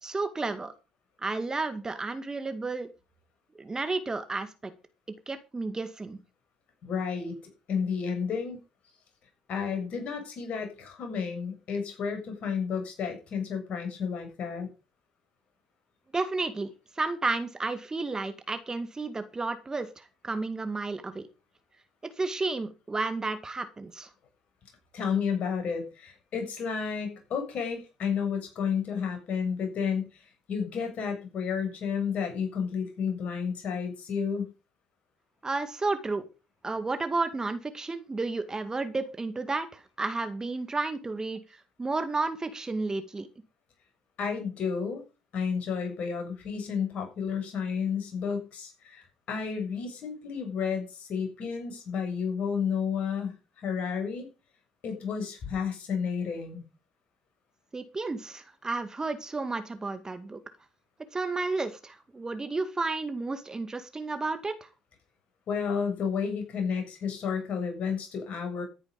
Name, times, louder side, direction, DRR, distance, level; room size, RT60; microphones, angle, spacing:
voice 1, 0.0-0.7 1.2-2.9 3.6-4.7 5.3-6.2 16.1-21.3 22.0-24.1 35.4-36.2 36.6-41.4 41.8-43.3 57.7-60.4 61.1-64.7, right 3 dB, 20° right, 10 dB, 2.1 m, -32 dB
voice 2, 6.8-7.4 7.7-8.6 9.5-14.7 24.9-34.5 44.2-45.0 45.3-54.3 54.8-56.6 65.5-68.6, left 6 dB, 50° left, 5 dB, 7.2 m, -31 dB
14.0 x 9.6 x 5.3 m, 0.31 s
figure-of-eight pair, 55°, 3 cm